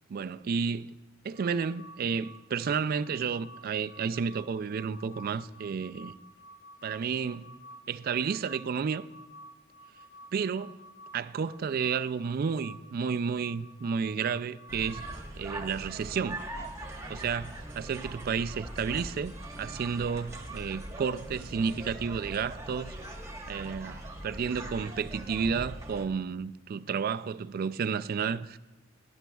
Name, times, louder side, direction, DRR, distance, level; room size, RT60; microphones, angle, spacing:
voice 1, 0.1-0.9 1.2-6.1 6.8-7.5 7.9-9.1 10.3-10.8 11.1-15.1 15.4-16.4 17.1-22.9 23.5-28.6, right 6 dB, 45° right, 0.3 m, -31 dB
sound 1, 1.3-15.3, equal, 40° left, 1.1 m, -52 dB
sound 2, 14.7-26.1, right 1 dB, 15° right, 1.1 m, -41 dB
17.5 x 11.5 x 2.3 m
head